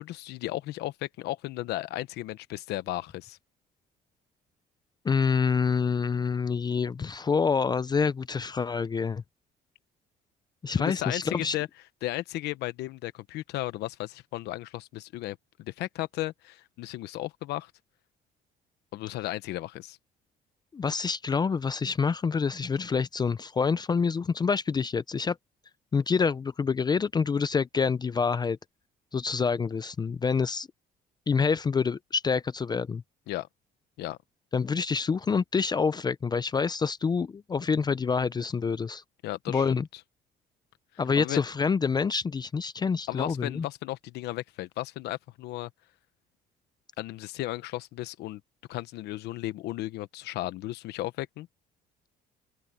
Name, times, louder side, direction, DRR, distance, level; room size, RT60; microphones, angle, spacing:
voice 1, 0.0-3.4 10.8-11.7 12.0-17.7 18.9-20.0 33.3-33.5 34.0-34.2 39.2-39.8 41.1-41.4 43.1-45.7 47.0-48.4 48.7-51.5, left 16 dB, 80° left, 1.1 m, -35 dB
voice 2, 5.0-9.2 10.6-11.6 20.7-25.4 25.9-28.6 29.1-30.7 31.3-33.0 34.5-39.0 39.5-39.9 41.0-43.6, left 5 dB, 25° left, 0.5 m, -27 dB
cardioid pair, 110°, 17 cm